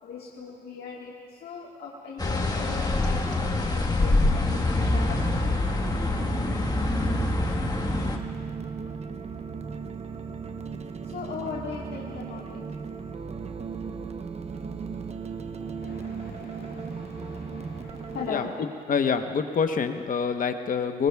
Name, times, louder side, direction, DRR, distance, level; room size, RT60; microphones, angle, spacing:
voice 1, 0.0-5.9 10.5-10.6 11.0-12.6 15.7-18.7, left 5 dB, 70° left, -4 dB, 1.6 m, -40 dB
sound 1, 2.2-8.2, left 2 dB, 20° left, 1.5 m, -25 dB
sound 2, 4.5-18.3, right 5 dB, 40° right, 0.9 m, -36 dB
voice 2, 18.9-21.1, left 6 dB, 50° left, 7 dB, 1.0 m, -26 dB
23.5 x 21.0 x 2.4 m, 2.2 s
cardioid pair, 75°, 17 cm